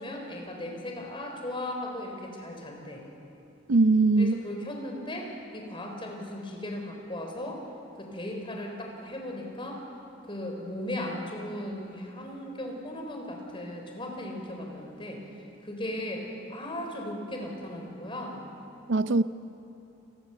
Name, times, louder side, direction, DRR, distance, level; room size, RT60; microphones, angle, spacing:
voice 1, 0.0-3.0 4.2-7.6 8.0-9.8 10.2-18.4, left 1 dB, 25° left, 2 dB, 4.0 m, -37 dB
voice 2, 3.7-4.4 18.9-19.2, right 3 dB, 65° right, 13 dB, 0.6 m, -21 dB
29.0 x 20.0 x 6.9 m, 2.8 s
head